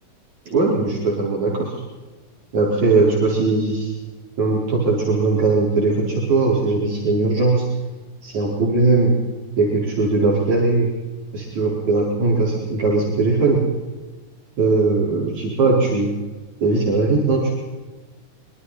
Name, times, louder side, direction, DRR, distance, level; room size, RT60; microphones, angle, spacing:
voice 1, 0.5-1.8 2.5-3.9 4.4-7.6 8.2-9.1 9.6-10.9 11.3-13.6 14.6-16.1 16.6-17.6, right 3 dB, 65° right, -4 dB, 5.9 m, -19 dB
26.0 x 24.0 x 4.3 m, 1.2 s
omnidirectional pair, 3.6 m